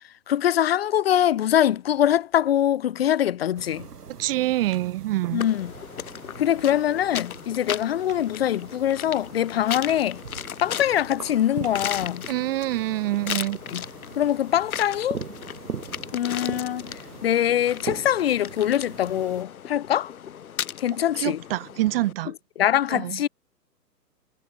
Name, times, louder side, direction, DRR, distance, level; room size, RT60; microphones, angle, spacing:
voice 1, 0.3-3.9 5.3-5.7 6.4-10.2 10.6-12.3 13.7-13.8 14.2-15.2 16.1-20.1 20.8-21.4 22.6-23.3, left 11 dB, 40° left, 0.6 m, -23 dB
sound 1, 3.6-19.4, right 6 dB, 65° right, 7.4 m, -41 dB
voice 2, 4.2-5.4 12.3-13.6 21.1-22.3 22.9-23.2, right 16 dB, 35° right, 1.7 m, -26 dB
sound 2, 5.4-22.1, left 9 dB, 55° left, 2.0 m, -37 dB
figure-of-eight pair, 125°, 49 cm